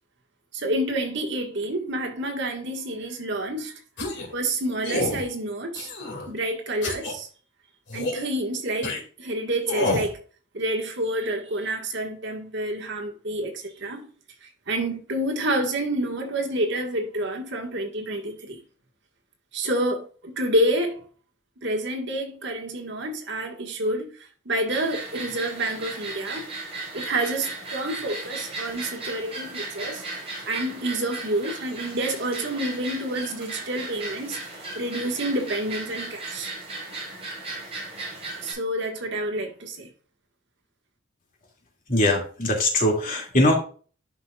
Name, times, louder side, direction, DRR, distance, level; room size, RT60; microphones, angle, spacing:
voice 1, 0.5-3.8 4.3-5.9 6.3-7.3 7.9-10.2 10.5-14.1 14.4-18.6 19.5-21.0 21.6-24.1 24.4-26.5 26.9-30.0 30.4-34.4 34.7-36.5 38.4-39.9, right 1 dB, 60° right, 1.6 m, -28 dB
sound 1, 4.0-4.3 4.8-5.2 5.8-6.3 6.8-7.1 7.9-8.3 8.8-9.0 9.6-10.1, left 2 dB, 60° left, 2.3 m, -28 dB
sound 2, 24.7-38.5, right 2 dB, 30° right, 4.3 m, -36 dB
voice 2, 41.9-43.6, left 1 dB, 45° left, 2.4 m, -21 dB
11.0 x 5.6 x 2.4 m
head